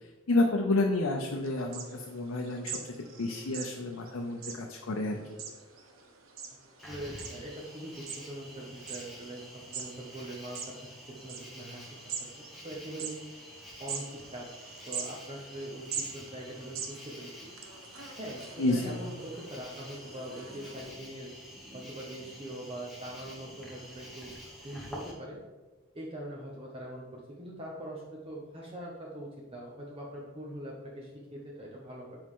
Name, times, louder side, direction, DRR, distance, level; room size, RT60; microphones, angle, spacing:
voice 1, 0.3-2.8 3.2-5.2 18.6-18.9, left 2 dB, 90° left, 1 dB, 0.7 m, -29 dB
sound 1, 1.4-20.9, right 6 dB, 85° right, 0.9 m, -44 dB
Cricket, 6.8-25.1, equal, ahead, 1.2 m, -48 dB
voice 2, 6.9-10.7 11.1-12.0 12.3-13.2 13.8-14.5 14.9-17.3 18.2-21.3 21.7-24.3 24.6-25.4 25.9-32.2, right 1 dB, 25° right, -3 dB, 0.8 m, -42 dB
7.5 x 4.8 x 3.7 m, 1.3 s
head